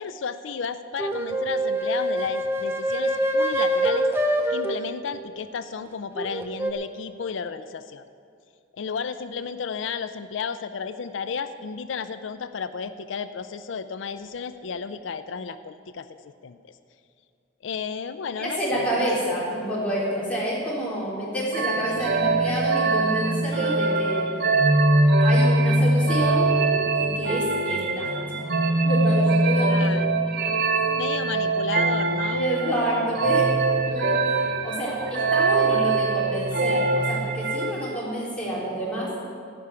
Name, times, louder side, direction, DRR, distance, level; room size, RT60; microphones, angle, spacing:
voice 1, 0.0-4.1 4.5-8.0 8.7-16.8 17.6-19.1 29.7-30.1 30.9-32.5, left 6 dB, 85° left, 11 dB, 0.5 m, -33 dB
sound 1, 1.0-4.8 6.2-6.7, right 1 dB, 10° right, 0.8 m, -25 dB
voice 2, 18.4-24.3 25.2-28.1 28.8-29.9 30.4-30.5 32.3-33.5 33.9-39.1, equal, 5° left, -7 dB, 3.7 m, -28 dB
sound 2, 21.5-37.9, right 2 dB, 55° right, 0.8 m, -22 dB
15.0 x 5.7 x 9.7 m, 2.4 s
head